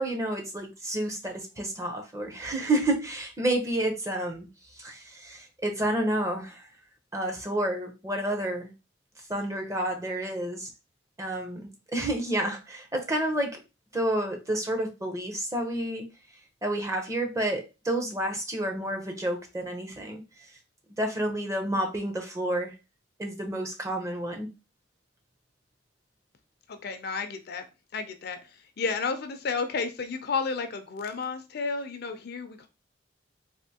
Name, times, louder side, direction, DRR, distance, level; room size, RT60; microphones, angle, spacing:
voice 1, 0.0-4.5 4.8-6.6 7.1-8.7 9.3-10.7 11.2-13.6 13.9-16.1 16.6-20.2 21.0-22.7 23.2-24.5, right 1 dB, 15° right, 3 dB, 0.6 m, -30 dB
voice 2, 26.7-27.6 27.9-32.7, left 4 dB, 55° left, 8 dB, 0.5 m, -32 dB
3.4 x 2.5 x 2.8 m, 0.28 s
head